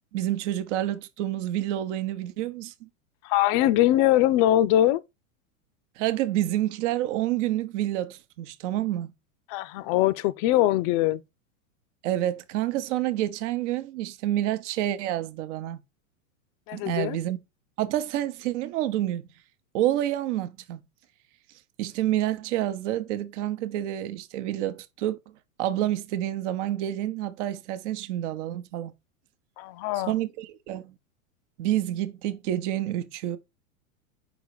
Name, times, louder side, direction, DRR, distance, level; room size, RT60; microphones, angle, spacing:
voice 1, 0.1-2.9 6.0-9.1 12.0-15.8 16.7-17.4 17.8-19.2 19.7-20.8 21.8-25.2 25.6-28.9 29.9-30.9 31.6-33.4, right 13 dB, 55° right, 0.9 m, -28 dB
voice 2, 3.2-5.0 9.5-11.2 16.7-17.2 29.6-30.1, left 14 dB, 35° left, 0.5 m, -22 dB
5.2 x 3.9 x 4.7 m
hypercardioid pair, 110°, 42 cm